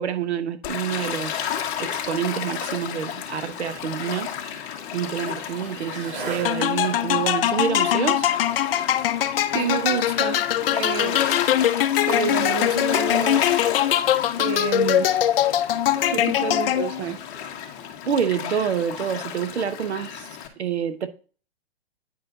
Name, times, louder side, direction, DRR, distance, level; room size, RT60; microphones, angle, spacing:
voice 1, 0.0-1.5 1.8-4.3 4.9-8.2 18.1-20.3 20.6-21.1, right 8 dB, 85° right, 1.0 m, -27 dB
Gull seagull / Waves surf, 0.6-20.5, left 9 dB, 35° left, 1.4 m, -33 dB
Skateboard, 3.0-13.6, right 3 dB, 55° right, 3.6 m, -43 dB
sound 1, 6.4-17.1, left 11 dB, 60° left, 0.7 m, -22 dB
voice 2, 9.5-11.2 12.1-13.5 14.4-15.1 16.1-17.2, right 8 dB, 25° right, 0.5 m, -29 dB
9.5 x 4.7 x 3.9 m
hypercardioid pair, 145°, 32 cm